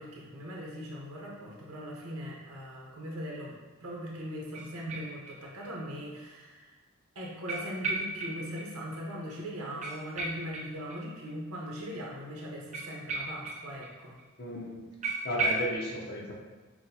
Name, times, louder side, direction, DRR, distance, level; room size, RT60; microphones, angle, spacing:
voice 1, 0.0-6.7 7.1-14.1, equal, 85° right, -3 dB, 0.8 m, -40 dB
sound 1, 4.5-5.7 6.0-6.1 7.5-8.7 8.9-9.0 9.3-9.4 9.8-11.3 12.7-13.9 14.2-14.3 14.5-14.6 15.0-15.7, right 3 dB, 30° right, 0.5 m, -35 dB
voice 2, 14.4-14.8 15.2-16.3, equal, 45° left, -3 dB, 0.6 m, -34 dB
5.9 x 2.2 x 2.7 m, 1.3 s
head